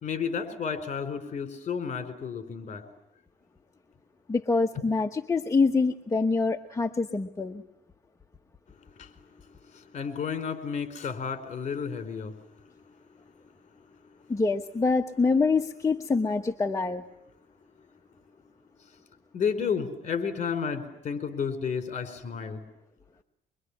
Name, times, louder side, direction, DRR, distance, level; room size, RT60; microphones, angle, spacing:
voice 1, 0.0-2.8 9.0-9.1 9.7-12.3 19.3-22.6, left 6 dB, 40° left, 10 dB, 4.5 m, -32 dB
voice 2, 4.3-7.6 14.3-17.0, left 4 dB, 20° left, 5 dB, 1.2 m, -25 dB
24.5 x 24.0 x 9.9 m, 0.85 s
cardioid pair, 110°, 17 cm